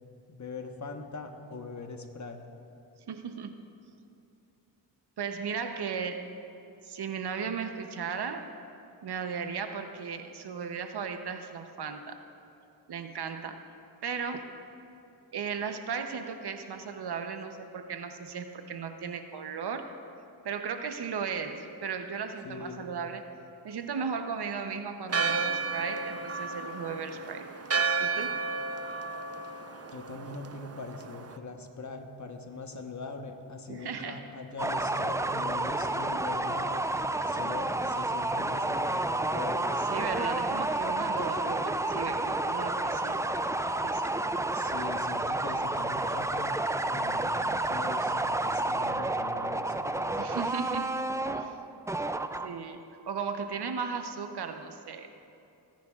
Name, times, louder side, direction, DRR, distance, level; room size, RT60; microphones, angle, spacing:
voice 1, 0.3-2.5 22.4-22.9 29.9-36.9 37.3-39.7 44.5-50.3, left 3 dB, 40° left, 4 dB, 1.2 m, -42 dB
voice 2, 3.1-3.5 5.2-6.3 6.8-8.5 9.0-12.2 12.9-13.6 14.0-14.5 15.3-19.9 20.4-23.3 23.6-27.5 28.0-28.4 33.7-34.3 39.9-43.2 43.8-44.1 50.2-51.0 51.4-51.6 52.4-55.1, right 6 dB, 65° right, 7 dB, 0.9 m, -36 dB
Church bell, 25.1-31.4, right 4 dB, 35° right, 0.7 m, -33 dB
sound 1, 34.6-52.7, right 2 dB, 10° right, 0.3 m, -30 dB
23.0 x 10.5 x 2.4 m, 2.7 s
cardioid pair, 65°, 43 cm